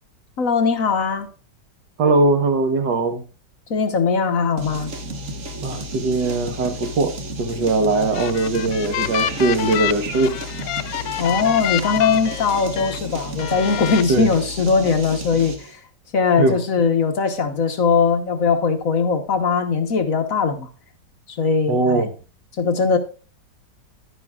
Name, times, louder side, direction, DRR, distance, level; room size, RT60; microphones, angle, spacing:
voice 1, 0.4-1.3 3.7-4.9 11.2-15.8 16.1-20.7 21.3-22.0 22.6-23.0, left 5 dB, 55° left, 1.3 m, -20 dB
voice 2, 2.0-3.2 5.6-7.1 7.4-10.3 14.1-14.3 16.4-16.6 21.7-22.1, right 3 dB, 80° right, 1.9 m, -20 dB
sound 1, 4.6-15.7, right 1 dB, 50° right, 1.6 m, -33 dB
sound 2, 7.9-13.0 13.4-14.0, left 12 dB, 90° left, 1.3 m, -28 dB
11.0 x 9.9 x 2.3 m
omnidirectional pair, 1.9 m